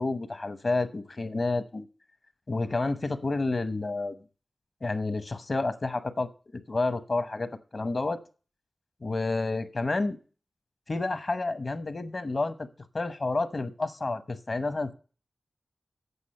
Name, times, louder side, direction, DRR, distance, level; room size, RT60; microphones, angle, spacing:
voice 1, 0.0-1.8 2.5-4.2 4.8-6.3 6.7-8.2 9.0-10.2 10.9-12.7 12.9-14.9, left 3 dB, 50° left, 11 dB, 0.9 m, -29 dB
8.3 x 6.4 x 5.5 m, 0.36 s
wide cardioid pair, 80°, 0 cm